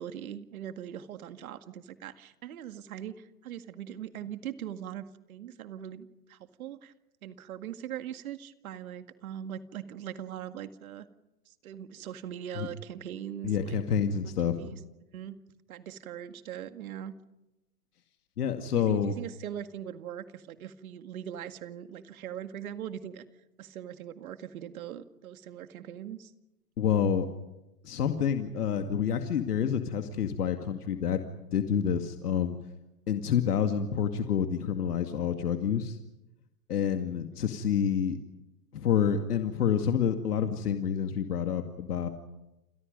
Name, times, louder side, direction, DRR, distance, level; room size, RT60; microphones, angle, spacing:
voice 1, 0.0-6.9 7.2-11.1 11.5-13.8 14.5-14.8 15.1-15.4 15.7-17.1 18.7-23.2 23.6-26.3, right 10 dB, 70° right, 10 dB, 2.1 m, -41 dB
voice 2, 13.4-14.7 18.4-19.1 26.8-27.3 27.8-31.2 31.5-32.6 33.1-36.0 36.7-38.2 38.7-42.1, left 8 dB, 85° left, 6 dB, 2.3 m, -28 dB
28.5 x 28.5 x 5.3 m, 0.96 s
hypercardioid pair, 140°, 45 cm